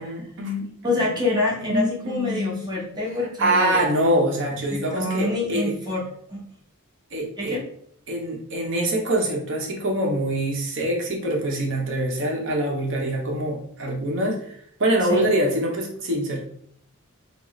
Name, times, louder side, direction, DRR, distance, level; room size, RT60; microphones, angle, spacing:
voice 1, 0.0-1.1 1.6-2.6 3.4-5.7 7.1-7.6 8.1-16.4, right 1 dB, 60° right, 0 dB, 0.8 m, -24 dB
voice 2, 0.8-3.8 4.7-6.0 6.3-6.5 7.4-7.6 15.1-15.3, left 2 dB, 20° right, -3 dB, 1.0 m, -26 dB
3.8 x 2.0 x 3.1 m, 0.64 s
head